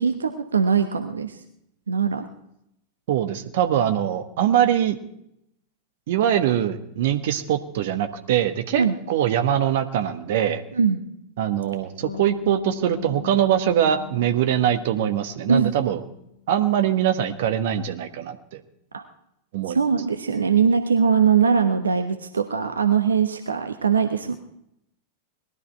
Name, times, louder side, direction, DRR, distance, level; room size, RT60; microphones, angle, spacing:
voice 1, 0.0-1.4 1.9-2.3 8.8-8.9 10.7-11.0 15.5-15.7 18.9-19.0 19.7-24.4, right 6 dB, 75° right, 8 dB, 1.0 m, -21 dB
voice 2, 3.1-5.0 6.1-10.6 11.4-16.0 16.5-18.6 19.5-19.8, right 10 dB, 55° right, 9 dB, 1.3 m, -22 dB
Bass guitar, 12.0-16.3, left 10 dB, 70° left, 0.9 m, -39 dB
20.0 x 12.5 x 4.5 m, 0.78 s
figure-of-eight pair, 90°, 0 cm